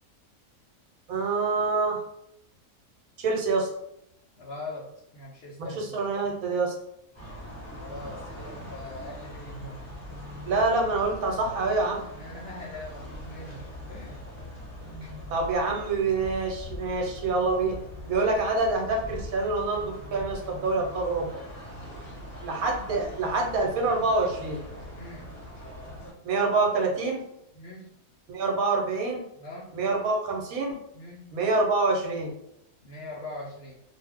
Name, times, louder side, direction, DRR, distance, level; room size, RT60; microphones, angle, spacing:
voice 1, 1.1-2.0 3.2-3.7 5.6-6.7 10.5-12.0 15.3-17.8 18.1-21.3 22.4-24.6 26.2-27.2 28.3-29.2 29.7-30.8 31.3-32.3, right 3 dB, 75° right, 1 dB, 1.1 m, -26 dB
voice 2, 4.4-4.9 5.1-5.9 7.7-9.8 12.1-13.6 13.9-14.2 24.9-25.3 27.5-28.0 29.3-29.7 30.9-31.4 32.8-33.8, left 2 dB, 65° left, -3 dB, 0.6 m, -41 dB
sound 1, 7.1-26.1, left 1 dB, 10° left, 1.3 m, -42 dB
2.5 x 2.2 x 3.4 m, 0.78 s
omnidirectional pair, 1.5 m